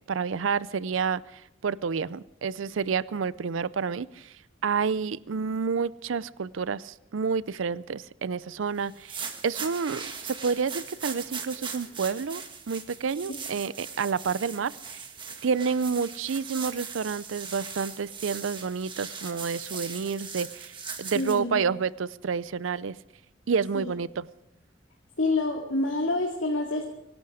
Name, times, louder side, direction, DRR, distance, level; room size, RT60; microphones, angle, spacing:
voice 1, 0.1-4.3 4.6-15.0 15.4-23.0 23.5-24.2, right 5 dB, 85° right, 19 dB, 0.5 m, -29 dB
sound 1, 8.9-21.4, right 6 dB, 25° right, 1.6 m, -39 dB
voice 2, 21.1-21.6 23.7-23.9 25.2-26.8, left 2 dB, 90° left, 0 dB, 2.3 m, -27 dB
25.0 x 11.5 x 4.9 m, 0.84 s
head